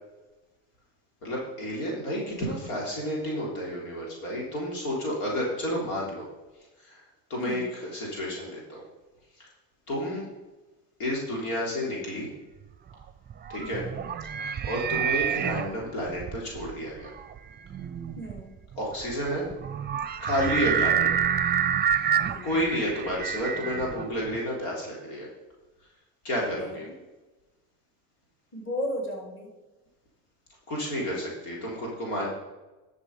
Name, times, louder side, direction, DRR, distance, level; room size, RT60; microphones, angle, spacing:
voice 1, 1.2-6.3 6.8-7.0 7.3-8.8 9.4-9.5 9.9-10.3 11.0-12.3 13.5-13.8 14.6-17.1 18.8-19.4 20.2-21.1 22.4-25.3 26.2-26.9 30.7-32.3, equal, 90° left, -2 dB, 3.6 m, -30 dB
voice 2, 7.4-7.7 13.6-14.0 18.2-18.6 20.6-21.1 22.3-22.6 26.4-27.0 28.5-29.5, equal, 30° left, -1 dB, 3.6 m, -36 dB
sound 1, 12.9-24.4, right 8 dB, 25° right, 0.6 m, -28 dB
11.0 x 6.5 x 5.4 m, 1.1 s
supercardioid pair, 85°, 41 cm